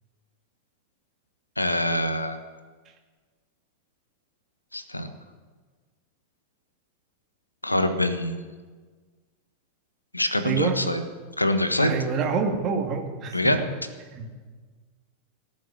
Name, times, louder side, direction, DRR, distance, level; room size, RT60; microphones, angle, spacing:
voice 1, 1.6-2.4 4.7-5.1 7.6-8.4 10.1-11.0 11.4-11.9 13.3-13.6, left 1 dB, 85° left, 9 dB, 1.3 m, -24 dB
voice 2, 10.4-10.8 11.8-13.6 14.1-14.3, right 5 dB, 30° right, 4 dB, 2.2 m, -27 dB
18.5 x 7.3 x 9.7 m, 1.4 s
figure-of-eight pair, 90°, 0 cm